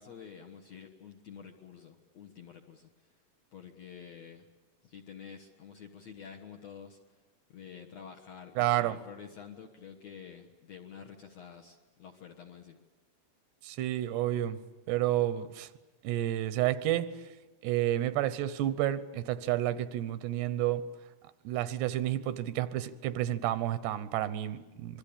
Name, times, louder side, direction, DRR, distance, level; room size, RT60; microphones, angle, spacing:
voice 1, 0.0-2.9 3.5-4.5 4.8-7.0 7.5-12.8, left 7 dB, 60° left, 1.9 m, -49 dB
voice 2, 8.6-9.0 13.6-14.6 14.9-15.7 16.0-17.1 17.6-20.9 21.4-25.0, right 13 dB, 90° right, 3.1 m, -30 dB
26.0 x 22.0 x 8.8 m
omnidirectional pair, 4.7 m